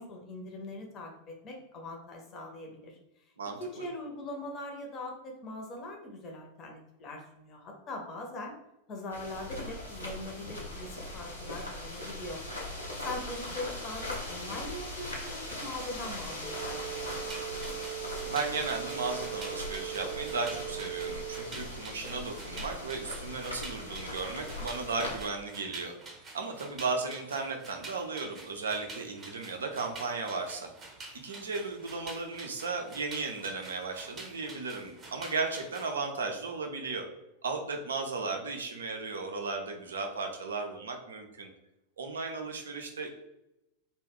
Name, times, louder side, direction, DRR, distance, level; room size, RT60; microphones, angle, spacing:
voice 1, 0.0-3.0 3.6-8.5 8.9-12.4 13.0-17.4, left 2 dB, 30° left, 1 dB, 0.7 m, -41 dB
voice 2, 3.4-3.8 18.2-25.9 26.3-30.7 31.1-37.0 37.4-41.5 42.0-43.1, right 4 dB, 70° right, 3 dB, 0.4 m, -35 dB
sound 1, 9.1-25.2, left 1 dB, 85° left, 0.7 m, -40 dB
sound 2, 16.4-21.4, right 19 dB, 5° right, 0.4 m, -40 dB
sound 3, 16.9-35.9, right 3 dB, 25° right, 0.7 m, -48 dB
2.2 x 2.2 x 3.4 m, 0.91 s
figure-of-eight pair, 90°, 0 cm